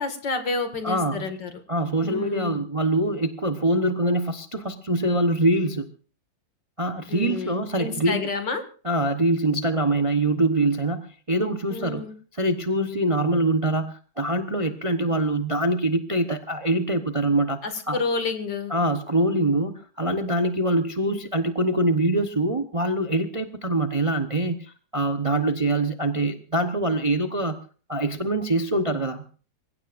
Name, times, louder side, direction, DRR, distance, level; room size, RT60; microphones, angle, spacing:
voice 1, 0.0-1.5 2.0-2.6 7.1-8.6 11.7-12.1 17.6-18.7, left 4 dB, 70° left, 7 dB, 2.7 m, -29 dB
voice 2, 0.8-1.3 1.7-5.9 6.8-8.2 8.8-12.0 12.4-17.6 17.9-18.0 18.7-27.6 27.9-29.2, right 1 dB, 25° right, 7 dB, 0.8 m, -24 dB
27.0 x 16.0 x 2.6 m, 0.39 s
omnidirectional pair, 2.0 m